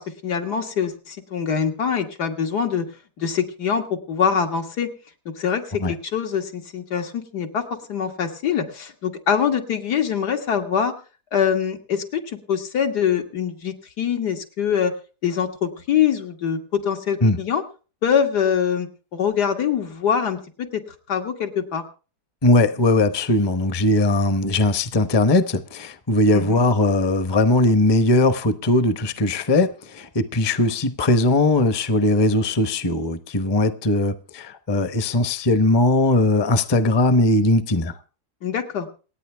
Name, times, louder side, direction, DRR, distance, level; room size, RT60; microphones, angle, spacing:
voice 1, 0.0-2.9 3.2-4.9 5.4-5.6 5.9-7.6 7.9-10.9 11.3-12.2 12.5-14.9 15.2-17.6 18.0-20.8 21.1-21.8 26.3-26.6 38.4-38.9, left 7 dB, 80° left, 2.2 m, -24 dB
voice 2, 22.4-37.9, left 2 dB, 25° left, 0.6 m, -19 dB
27.0 x 9.2 x 3.4 m
omnidirectional pair, 1.7 m